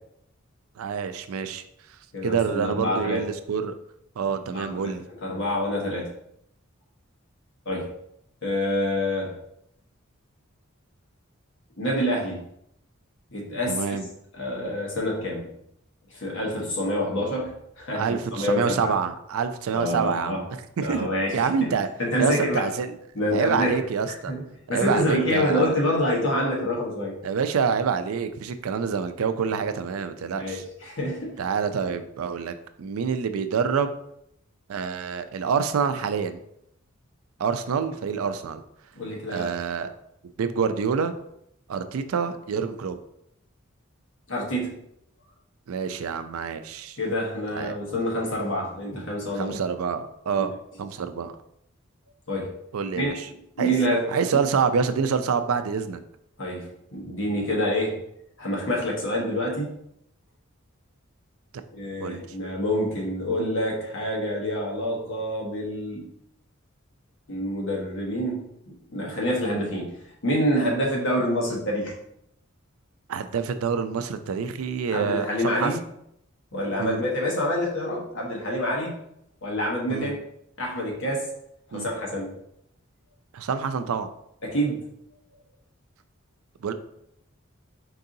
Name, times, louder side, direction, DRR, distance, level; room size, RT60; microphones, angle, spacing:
voice 1, 0.8-1.6 2.2-3.8 4.2-5.0 13.7-14.1 17.9-21.1 21.3-21.9 22.2-22.9 23.3-24.3 24.7-25.8 27.2-30.6 31.4-33.9 34.7-36.4 37.4-38.6 39.3-39.9 40.4-41.1 41.7-43.0 45.7-47.0 47.5-47.8 49.4-50.5 50.8-51.3 52.7-53.3 53.6-53.8 54.1-56.0 62.0-62.3 73.1-75.7 76.8-77.0 79.9-80.1 81.7-81.9 83.3-84.1 86.6-86.7, right 6 dB, 80° right, 10 dB, 0.4 m, -27 dB
voice 2, 2.1-3.3 4.4-4.9 5.2-6.1 7.6-7.9 8.4-9.3 11.8-12.4 13.3-14.0 14.3-15.5 16.1-19.0 19.7-20.4 20.8-21.7 22.0-22.6 23.1-23.8 24.3-24.4 24.7-27.2 30.3-31.4 31.8-31.9 38.9-39.6 44.3-44.7 47.0-49.6 50.4-50.5 52.3-52.5 53.0-53.1 53.6-54.4 56.4-58.0 58.4-59.7 61.7-66.1 67.3-69.9 70.2-71.9 74.9-75.8 76.5-79.0 79.4-80.1 80.6-81.3 81.7-82.3 84.4-84.8, equal, 65° left, -2 dB, 1.3 m, -27 dB
4.6 x 3.9 x 2.7 m, 0.75 s
head